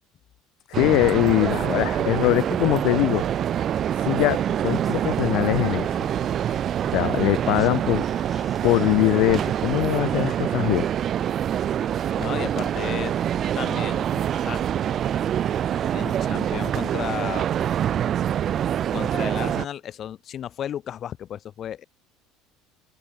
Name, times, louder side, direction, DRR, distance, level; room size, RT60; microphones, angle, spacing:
voice 1, 0.7-3.3 3.9-6.0 6.9-8.1 8.6-10.9, left 21 dB, 60° left, 0.4 m, -22 dB
sound 1, 0.7-19.7, right 10 dB, 35° right, 0.5 m, -25 dB
Laughter, 4.5-17.5 17.7-17.8, left 4 dB, 15° left, 2.5 m, -49 dB
voice 2, 12.2-13.2 13.6-14.7 15.9-17.5 18.9-21.8, left 10 dB, 35° left, 0.8 m, -33 dB
cardioid pair, 150°, 0 cm